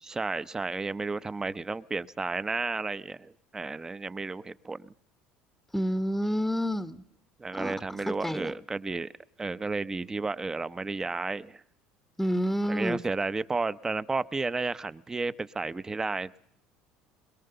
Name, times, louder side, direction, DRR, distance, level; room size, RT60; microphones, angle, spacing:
voice 1, 0.0-4.9 7.4-9.1 9.4-11.6 12.7-16.4, right 3 dB, 20° right, 16 dB, 0.8 m, -32 dB
voice 2, 5.7-7.0 7.5-8.5 12.2-13.0, equal, 5° left, 10 dB, 1.0 m, -29 dB
22.5 x 21.0 x 6.8 m, 0.74 s
supercardioid pair, 85°, 3 cm